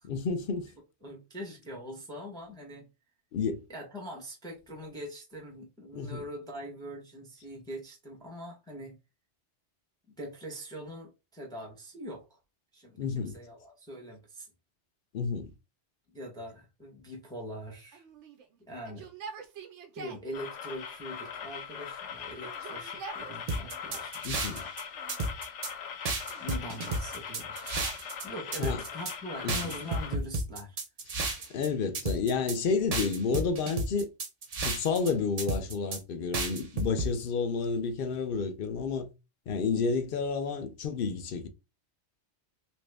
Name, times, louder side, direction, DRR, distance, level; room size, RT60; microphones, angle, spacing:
voice 1, 0.0-0.7 3.3-3.6 5.9-6.2 13.0-13.4 15.1-15.5 24.2-24.7 28.6-28.8 29.4-29.6 31.5-34.1 34.6-39.1 39.5-41.5, left 5 dB, 60° left, 0.6 m, -30 dB
voice 2, 1.0-2.9 3.7-9.0 10.1-12.4 12.7-14.5 16.1-18.0 18.6-19.1 20.0-24.2 26.4-27.9 28.2-30.8, equal, 5° left, 0.7 m, -42 dB
Yell, 17.9-20.3 21.2-21.9 22.3-24.2 24.9-25.6 26.3-28.1 29.5-30.3 31.2-32.9, right 5 dB, 80° right, 1.0 m, -49 dB
sound 1, 20.3-30.2, left 7 dB, 80° left, 0.9 m, -41 dB
sound 2, 23.5-24.8 25.1-25.7 26.0-28.2 28.5-29.1 29.5-31.7 31.9-32.6 32.9-35.1 35.4-36.0 36.3-37.1, right 2 dB, 45° right, 0.5 m, -32 dB
2.9 x 2.6 x 3.3 m
omnidirectional pair, 1.2 m